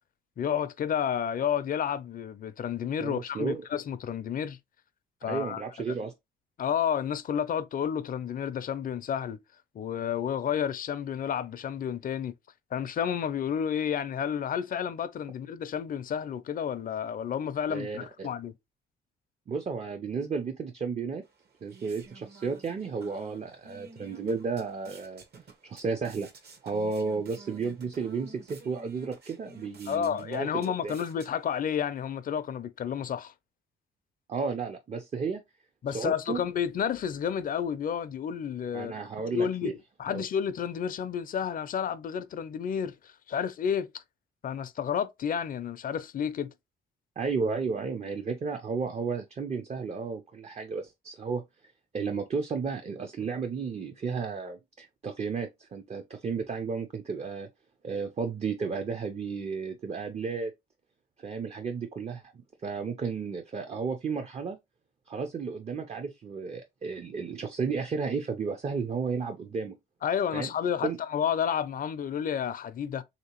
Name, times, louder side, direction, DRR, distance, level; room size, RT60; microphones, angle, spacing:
voice 1, 0.4-4.6 5.2-5.6 6.6-9.4 9.7-12.3 12.7-18.5 29.9-33.3 35.8-38.9 39.3-44.0 44.4-46.5 70.0-73.0, left 8 dB, 45° left, 0.4 m, -31 dB
voice 2, 3.0-3.6 5.3-6.1 17.7-18.3 19.5-21.2 21.6-25.2 25.6-26.3 26.6-31.0 34.3-35.4 35.9-36.4 38.7-39.7 40.1-40.2 47.2-51.4 51.9-57.5 57.8-60.5 61.2-62.2 62.6-64.6 65.1-69.8 70.3-70.5 70.8-71.0, right 5 dB, 35° right, 0.5 m, -33 dB
sound 1, 21.2-31.8, right 3 dB, 55° right, 0.9 m, -52 dB
3.2 x 2.8 x 2.9 m
cardioid pair, 90°, 20 cm